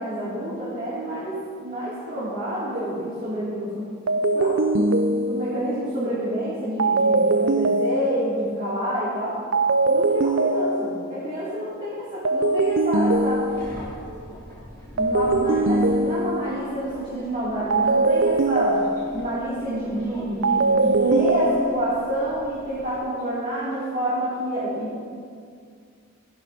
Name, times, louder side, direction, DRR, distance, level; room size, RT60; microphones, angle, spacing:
voice 1, 0.0-1.3 1.6-3.9 4.3-4.9 5.3-9.4 9.9-13.4 15.0-18.8 19.1-24.9, right 1 dB, 40° right, -10 dB, 2.6 m, -28 dB
sound 1, 2.7-3.0 4.1-5.8 6.8-8.5 9.5-11.2 12.2-13.9 15.0-16.7 17.7-19.4 20.4-21.8, right 2 dB, 60° right, 0.5 m, -22 dB
Subway metro underground, 12.9-23.0, equal, 10° left, 3.0 m, -43 dB
14.5 x 11.5 x 2.8 m, 2.2 s
head